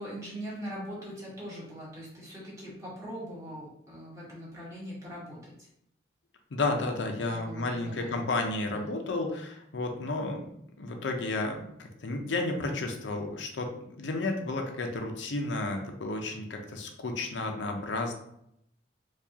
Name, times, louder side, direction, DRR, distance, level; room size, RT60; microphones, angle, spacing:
voice 1, 0.0-5.7 7.3-8.3 8.7-8.9, equal, 15° right, -7 dB, 1.3 m, -41 dB
voice 2, 6.5-10.5 10.8-18.2, left 2 dB, 85° left, 3 dB, 0.6 m, -32 dB
4.5 x 2.4 x 2.8 m, 0.75 s
head